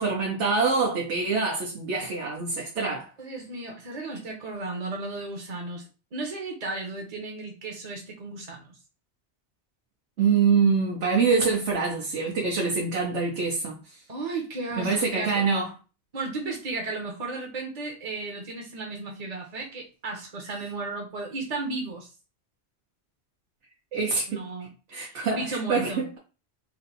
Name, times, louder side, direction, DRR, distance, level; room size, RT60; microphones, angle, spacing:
voice 1, 0.0-3.1 10.2-13.8 14.8-15.7 23.9-24.4 24.9-25.4 25.7-26.2, right 5 dB, 85° right, 1.1 m, -25 dB
voice 2, 3.2-5.8 6.1-8.8 14.1-15.4 16.1-22.1 24.3-24.7 25.0-26.1, right 3 dB, 40° right, 0.8 m, -34 dB
3.0 x 2.6 x 4.0 m
omnidirectional pair, 1.2 m